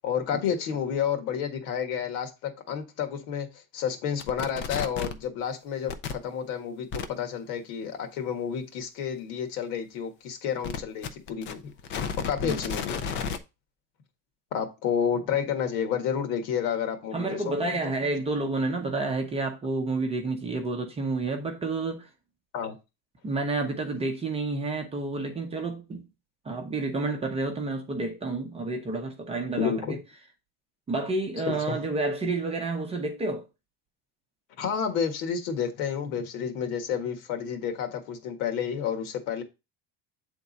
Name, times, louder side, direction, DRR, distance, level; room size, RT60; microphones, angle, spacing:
voice 1, 0.0-11.6 12.3-13.0 14.5-17.7 22.5-22.7 29.6-30.0 31.5-31.8 34.6-39.4, left 7 dB, 80° left, 1.7 m, -30 dB
sound 1, 4.2-5.2 5.9-6.1 6.9-7.1 10.6-13.4, left 6 dB, 30° left, 0.4 m, -32 dB
voice 2, 17.1-22.1 23.2-26.1 26.4-30.0 30.9-33.5, right 3 dB, 15° right, 0.6 m, -30 dB
8.3 x 3.6 x 4.0 m
cardioid pair, 170°, 43 cm